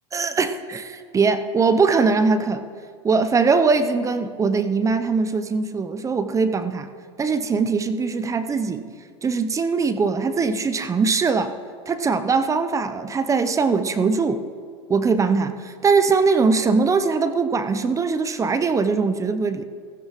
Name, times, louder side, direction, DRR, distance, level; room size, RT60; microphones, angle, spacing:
voice 1, 0.1-2.6 3.0-6.9 7.2-8.9 9.2-11.5 11.9-14.4 14.9-19.6, right 4 dB, 20° right, 10 dB, 0.7 m, -21 dB
15.0 x 15.0 x 3.1 m, 2.1 s
hypercardioid pair, 95°, 15 cm